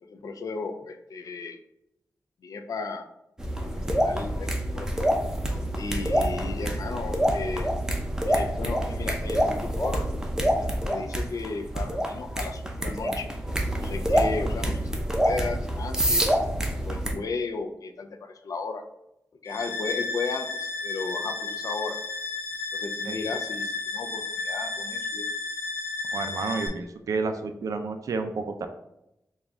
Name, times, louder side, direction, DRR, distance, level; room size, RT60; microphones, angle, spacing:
voice 1, 0.0-1.6 2.4-3.1 3.6-4.9 5.7-7.7 8.3-10.1 10.5-13.3 13.7-14.8 15.2-16.2 16.8-18.8 19.4-22.0 22.7-25.3, left 4 dB, 70° left, 6 dB, 0.4 m, -35 dB
sound 1, 3.4-17.1, equal, 10° right, 0.5 m, -27 dB
sound 2, 19.5-26.7, left 3 dB, 40° left, 1.0 m, -33 dB
voice 2, 26.1-28.7, right 4 dB, 65° right, 7 dB, 0.4 m, -30 dB
4.1 x 2.3 x 3.4 m, 0.85 s
wide cardioid pair, 125°, 6 cm